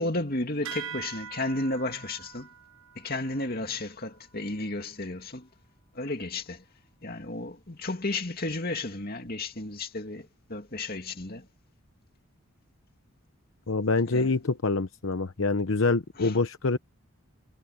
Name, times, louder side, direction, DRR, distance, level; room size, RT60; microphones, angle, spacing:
voice 1, 0.0-2.5 3.0-5.5 5.9-6.6 7.0-11.5 14.1-14.3 16.2-16.4, left 2 dB, 45° left, 2.4 m, -33 dB
sound 1, 0.6-5.6, right 8 dB, 90° right, 7.3 m, -44 dB
voice 2, 13.7-16.8, left 3 dB, 70° left, 0.9 m, -26 dB
head